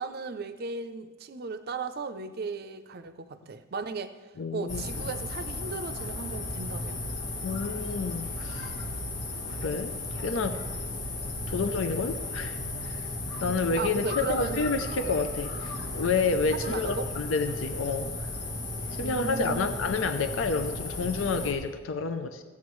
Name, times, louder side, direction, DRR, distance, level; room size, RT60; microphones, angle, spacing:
voice 1, 0.0-4.2 4.5-7.0 13.8-14.6 14.9-15.1 16.5-17.1 19.0-19.7, right 4 dB, 50° right, 11 dB, 0.5 m, -36 dB
voice 2, 4.4-5.1 7.4-8.7 9.5-10.6 11.5-13.1 13.4-18.1 19.0-22.4, left 4 dB, 75° left, 9 dB, 0.5 m, -29 dB
sound 1, 4.7-21.5, left 2 dB, 60° left, 1.2 m, -35 dB
15.0 x 8.3 x 3.1 m, 1.4 s
head